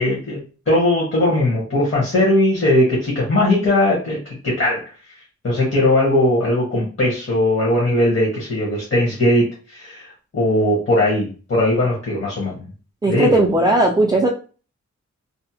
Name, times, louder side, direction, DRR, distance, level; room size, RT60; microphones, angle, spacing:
voice 1, 0.0-4.2 4.4-4.9 5.4-12.6 13.1-13.4, left 1 dB, 45° left, -5 dB, 1.0 m, -19 dB
voice 2, 13.0-14.3, right 1 dB, 15° right, -1 dB, 0.3 m, -17 dB
2.7 x 2.0 x 2.8 m, 0.36 s
wide cardioid pair, 130°, 29 cm